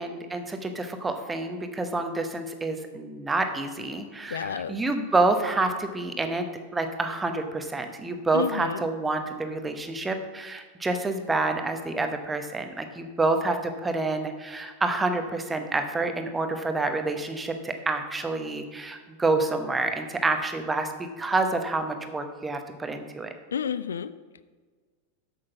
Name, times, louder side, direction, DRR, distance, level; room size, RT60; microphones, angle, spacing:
voice 1, 0.0-6.5 6.7-23.3, right 3 dB, 10° right, 6 dB, 1.0 m, -28 dB
voice 2, 4.3-4.8 8.3-8.8 23.5-24.1, left 7 dB, 65° left, 15 dB, 0.4 m, -30 dB
8.6 x 6.4 x 5.7 m, 1.5 s
figure-of-eight pair, 90°, 0 cm